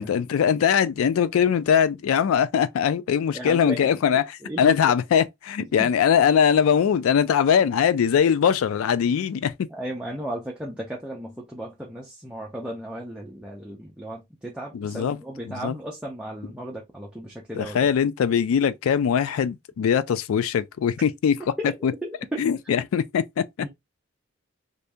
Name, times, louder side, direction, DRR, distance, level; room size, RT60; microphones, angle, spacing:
voice 1, 0.0-4.2 4.6-9.5 14.7-15.2 15.5-15.8 17.6-21.4 21.8-21.9 22.4-23.5, left 7 dB, 80° left, 0.3 m, -21 dB
voice 2, 3.3-4.9 5.6-5.9 9.7-17.9 21.4-21.7 22.0-22.5 23.6-23.7, equal, 5° right, 0.5 m, -35 dB
2.7 x 2.6 x 3.3 m
head